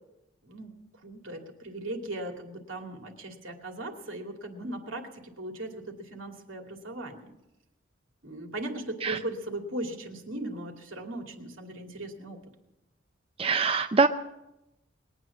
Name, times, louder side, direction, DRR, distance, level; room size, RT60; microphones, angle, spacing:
voice 1, 1.0-7.3 8.2-12.4, right 1 dB, 80° right, 3 dB, 2.5 m, -38 dB
voice 2, 13.4-14.1, right 4 dB, 30° right, 8 dB, 0.5 m, -23 dB
21.0 x 9.2 x 7.2 m, 0.91 s
head